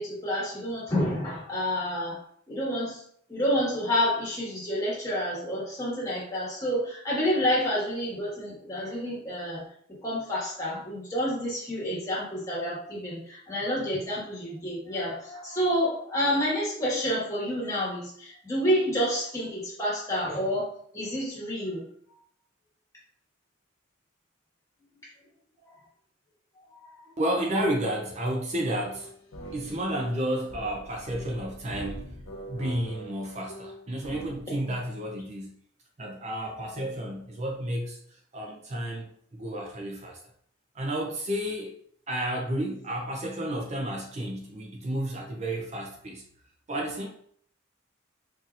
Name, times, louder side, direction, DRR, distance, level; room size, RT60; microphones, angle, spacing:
voice 1, 0.0-3.0 3.3-9.6 10.0-21.8 26.8-26.9, equal, 15° left, -7 dB, 1.4 m, -29 dB
voice 2, 27.2-29.1 29.5-32.1 32.5-35.5 36.0-38.0 38.3-40.2 40.7-41.8 42.1-46.2 46.7-47.1, right 1 dB, 35° right, 0 dB, 0.4 m, -31 dB
sound 1, 28.9-34.4, right 1 dB, 85° left, 0.6 m, -43 dB
4.1 x 2.8 x 2.4 m, 0.62 s
head